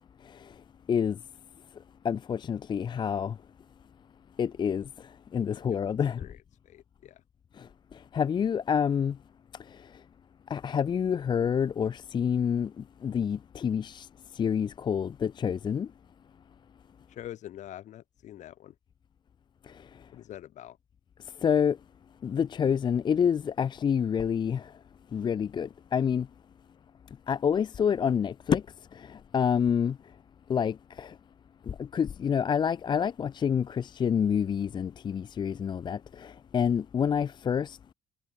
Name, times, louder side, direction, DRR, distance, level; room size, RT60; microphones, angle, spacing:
voice 1, 2.0-3.3 4.4-4.8 5.3-6.2 8.1-9.2 10.5-14.1 14.4-15.9 21.4-21.8 22.2-24.7 25.1-26.3 27.3-28.6 29.0-30.0 30.5-31.1 31.7-37.9, left 7 dB, 35° left, 0.5 m, -27 dB
voice 2, 5.5-6.4 6.6-7.2 17.1-18.8 20.1-20.8, left 12 dB, 65° left, 5.8 m, -45 dB
cardioid pair, 95°, 13 cm